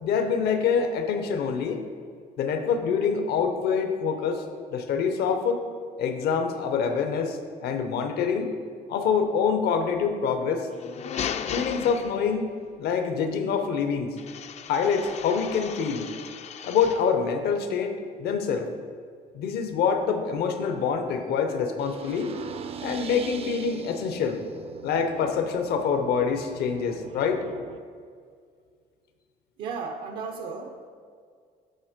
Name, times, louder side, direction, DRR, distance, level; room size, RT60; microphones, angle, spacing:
voice 1, 0.0-1.8 2.4-4.4 4.7-5.6 6.0-8.5 8.9-10.7 11.5-14.2 14.7-16.1 16.6-18.7 19.3-22.3 22.8-24.4 24.8-27.5, left 6 dB, 70° left, 7 dB, 0.8 m, -26 dB
sound 1, 10.7-12.6 14.2-17.2, left 8 dB, 40° left, 0.4 m, -36 dB
sound 2, 21.8-27.8, right 6 dB, 35° right, 0.4 m, -41 dB
voice 2, 29.6-30.9, right 5 dB, 75° right, 4 dB, 0.6 m, -35 dB
9.1 x 4.3 x 5.0 m, 2.1 s
cardioid pair, 110°, 17 cm